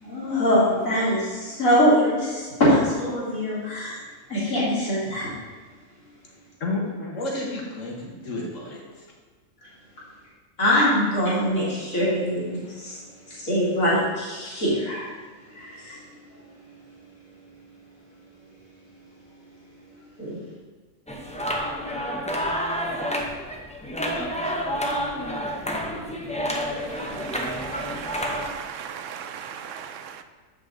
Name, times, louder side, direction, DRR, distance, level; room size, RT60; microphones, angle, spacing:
voice 1, 0.0-4.0 4.3-5.3 10.6-13.0 13.4-15.0 15.5-15.9 20.2-20.4, equal, 85° left, -8 dB, 2.6 m, -23 dB
voice 2, 6.6-9.0, left 2 dB, 70° left, -2 dB, 1.6 m, -31 dB
sound 1, 21.1-28.5, equal, 10° left, 0.5 m, -29 dB
voice 3, 26.7-30.2, right 8 dB, 70° right, 8 dB, 0.9 m, -37 dB
7.4 x 5.8 x 3.9 m, 1.4 s
omnidirectional pair, 1.4 m